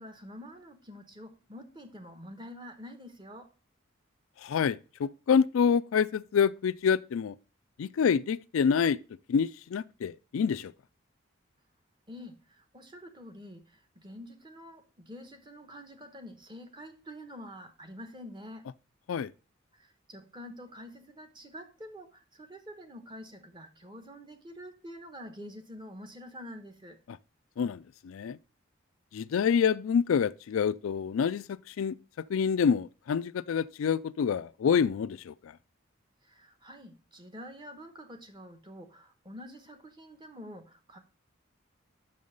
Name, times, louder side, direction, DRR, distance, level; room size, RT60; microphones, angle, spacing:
voice 1, 0.0-3.5 12.1-18.7 19.7-27.0 36.2-41.0, equal, 25° right, 1.0 m, -47 dB
voice 2, 4.4-7.3 7.8-9.0 9.3-10.7 19.1-19.3 27.6-28.4 29.1-32.0 32.3-35.5, left 6 dB, 80° left, 0.4 m, -27 dB
6.0 x 5.5 x 6.5 m
head